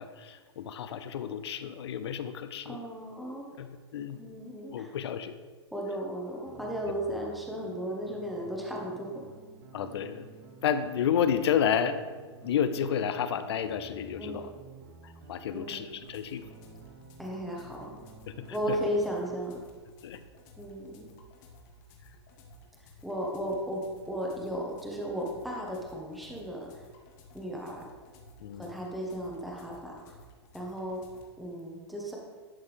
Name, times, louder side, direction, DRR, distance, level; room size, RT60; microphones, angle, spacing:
voice 1, 0.0-2.8 3.6-3.7 3.9-4.2 4.7-5.3 9.7-10.3 10.6-12.0 12.4-14.5 15.0-16.4 18.3-18.5 20.0-20.2 28.4-28.7, left 8 dB, 65° left, 11 dB, 0.6 m, -31 dB
voice 2, 2.6-3.5 4.2-4.9 5.7-9.2 14.2-14.5 15.5-15.9 17.2-18.0 18.5-19.6 20.6-21.1 23.0-26.8 27.3-27.9 28.6-30.2 30.5-31.0 31.4-32.2, equal, ahead, -2 dB, 0.9 m, -35 dB
sound 1, 6.4-19.4, right 5 dB, 45° right, 0.7 m, -52 dB
sound 2, 15.9-31.3, left 1 dB, 40° left, 1.1 m, -55 dB
11.0 x 4.3 x 3.4 m, 1.5 s
hypercardioid pair, 140°, 15 cm